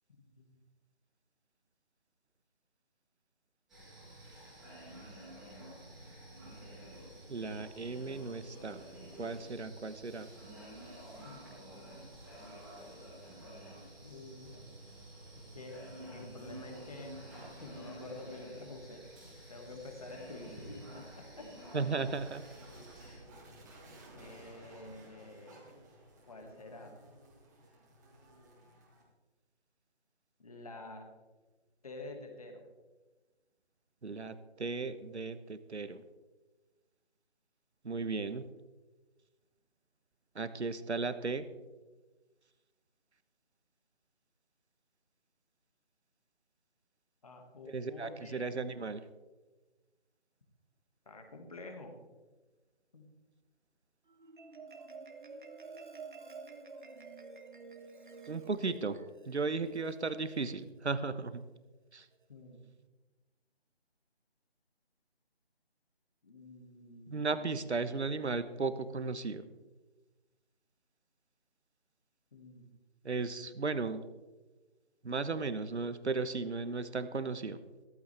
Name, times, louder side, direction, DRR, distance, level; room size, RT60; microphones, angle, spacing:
sound 1, 3.7-23.2, right 1 dB, ahead, 2.8 m, -50 dB
voice 1, 7.3-8.8 9.2-10.3 21.7-22.4 34.0-36.0 37.8-38.4 40.3-41.4 47.7-49.0 58.3-59.0 59.3-61.5 61.9-62.0 67.1-69.4 73.0-74.0 75.0-77.6, right 4 dB, 85° right, 12 dB, 1.2 m, -35 dB
voice 2, 11.2-12.1 14.0-14.7 15.4-15.8 16.1-17.3 17.6-19.0 19.5-21.5 23.0-23.3 24.1-25.7 26.3-27.0 30.4-31.1 31.8-32.7 47.2-48.6 51.1-52.0 52.9-53.1 62.3-62.7 66.2-68.1 72.3-72.7, left 2 dB, 35° left, 4 dB, 2.1 m, -49 dB
sound 2, 22.1-29.0, right 1 dB, 15° right, 2.0 m, -56 dB
Marimba xylophone, 54.1-60.7, right 4 dB, 50° right, 1.4 m, -50 dB
15.0 x 14.5 x 3.5 m, 1.2 s
figure-of-eight pair, 170°, 33 cm